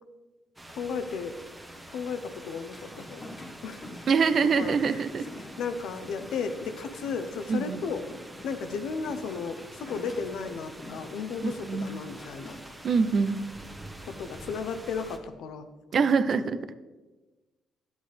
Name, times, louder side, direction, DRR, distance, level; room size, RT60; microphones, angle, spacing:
sound 1, 0.6-15.2, right 1 dB, 15° right, 1.1 m, -46 dB
voice 1, 0.7-1.3 1.9-3.3 3.6-3.8 4.6-5.0 5.4-8.0 8.4-12.6 14.1-15.7 15.9-16.0 16.4-16.5, left 5 dB, 80° left, 9 dB, 0.7 m, -34 dB
sound 2, 2.7-13.6, left 1 dB, 40° left, 1.4 m, -48 dB
voice 2, 4.1-5.2 7.5-7.8 11.4-11.9 12.8-13.4 15.9-16.6, right 5 dB, 55° right, 12 dB, 0.5 m, -24 dB
9.8 x 8.0 x 3.4 m, 1.2 s
cardioid pair, 90°, 0 cm